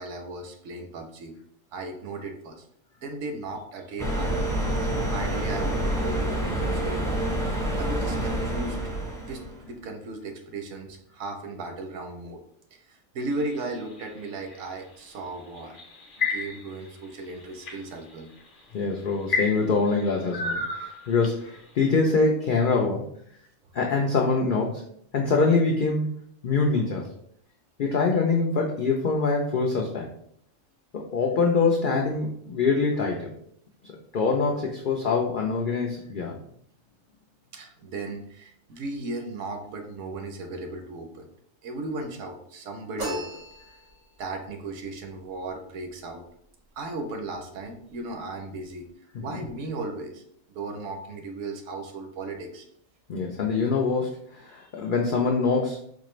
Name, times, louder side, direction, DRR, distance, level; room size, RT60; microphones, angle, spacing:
voice 1, 0.0-1.3 1.7-2.7 3.0-4.5 5.1-7.2 7.8-8.8 9.2-12.4 12.7-15.8 16.2-18.3 37.5-41.2 41.6-43.4 44.2-46.2 46.8-48.8 49.2-50.2 50.5-52.7, right 2 dB, 70° right, 5 dB, 0.9 m, -36 dB
sound 1, 4.0-9.6, right 1 dB, 5° left, 0.4 m, -27 dB
sound 2, 13.3-14.6 15.6-16.8 17.3-17.8 18.5-18.6 19.3-21.5, left 3 dB, 45° left, 0.8 m, -30 dB
voice 2, 18.7-23.1 23.7-24.8 25.1-26.1 26.4-27.1 27.8-30.1 30.9-33.3 34.1-36.3 53.1-55.8, left 4 dB, 90° left, 0 dB, 0.4 m, -24 dB
sound 3, 43.0-44.2, right 1 dB, 90° right, 1.7 m, -36 dB
4.4 x 2.4 x 3.0 m, 0.69 s
omnidirectional pair, 1.4 m